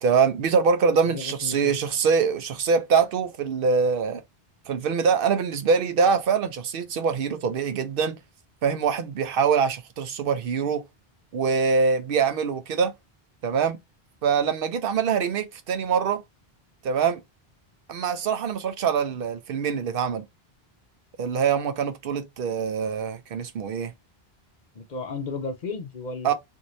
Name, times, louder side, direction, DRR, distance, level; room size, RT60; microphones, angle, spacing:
voice 1, 0.0-4.2 4.7-8.2 8.6-10.8 11.3-12.9 13.4-13.8 14.2-16.2 16.8-17.2 17.9-20.3 21.2-23.9 26.2-26.3, right 6 dB, 70° right, 0.7 m, -24 dB
voice 2, 1.0-2.0 24.7-26.3, left 4 dB, 55° left, 0.6 m, -34 dB
2.7 x 2.6 x 2.9 m
omnidirectional pair, 1.0 m